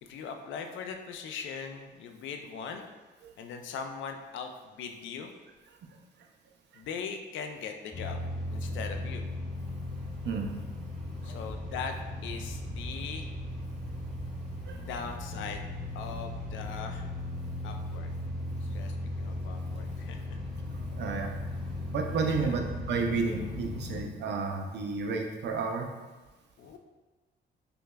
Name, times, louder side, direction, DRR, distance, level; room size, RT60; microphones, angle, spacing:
voice 1, 0.0-2.9 3.4-5.3 6.7-8.2 8.5-9.3 11.2-12.0 12.2-13.3 14.7-15.7 15.9-17.1 17.6-18.1 18.6-20.4 22.1-22.6 26.6-26.8, left 6 dB, 75° left, 5 dB, 0.4 m, -40 dB
sound 1, 7.9-24.0, left 1 dB, ahead, 0.8 m, -37 dB
voice 2, 10.2-10.6 11.2-11.3 14.7-14.8 21.0-21.3 21.9-25.9, right 4 dB, 60° right, 2 dB, 0.5 m, -31 dB
5.0 x 2.3 x 2.2 m, 1.2 s
cardioid pair, 90°, 20 cm